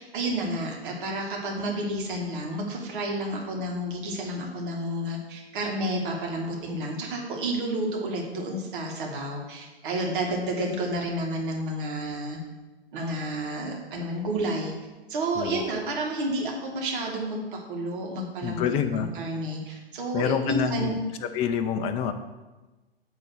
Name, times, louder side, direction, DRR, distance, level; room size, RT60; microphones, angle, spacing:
voice 1, 0.0-12.4 12.9-14.7 15.1-18.6 18.9-20.9, right 1 dB, 55° right, 0 dB, 2.2 m, -30 dB
voice 2, 15.4-15.8 18.4-19.1 20.1-20.9 21.3-22.1, left 8 dB, 20° left, 8 dB, 0.4 m, -27 dB
9.1 x 3.7 x 6.5 m, 1.2 s
figure-of-eight pair, 110°, 31 cm